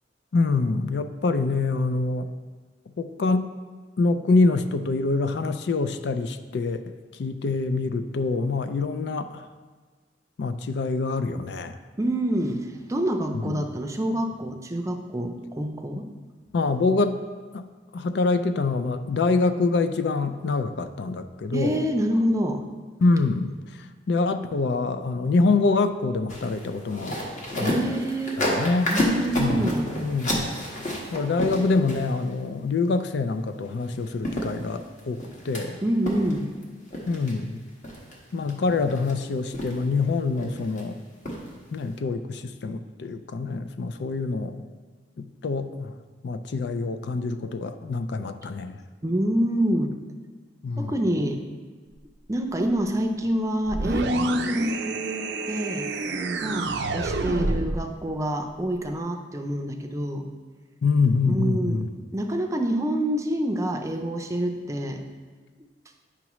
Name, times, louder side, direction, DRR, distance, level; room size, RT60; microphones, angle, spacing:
voice 1, 0.3-2.3 3.0-3.5 4.0-9.5 10.4-11.8 13.3-13.6 16.5-17.2 17.5-17.6 17.9-21.8 23.0-27.2 27.6-27.8 28.4-29.0 29.4-29.7 30.0-30.6 31.0-35.8 37.1-37.6 38.3-41.0 41.7-44.7 45.2-45.9 46.2-48.8 50.6-50.9 60.8-61.9, left 3 dB, 70° left, 10 dB, 0.4 m, -25 dB
voice 2, 12.0-16.1 21.5-22.6 27.6-28.4 28.8-29.9 35.8-36.5 49.0-49.9 50.8-51.4 52.3-55.9 56.4-60.3 61.3-61.9 62.1-65.0, equal, 20° right, 4 dB, 0.5 m, -26 dB
sound 1, 26.3-32.3 33.8-33.9 34.2-35.6 36.1-36.6 36.9-37.3 37.8-38.1 38.5-39.1 39.5-40.0 40.4-40.8 41.3-41.5 41.8-41.9, equal, 45° left, 1.4 m, -29 dB
sound 2, 53.7-57.9, right 3 dB, 70° right, 0.5 m, -28 dB
9.6 x 5.9 x 3.1 m, 1.4 s
head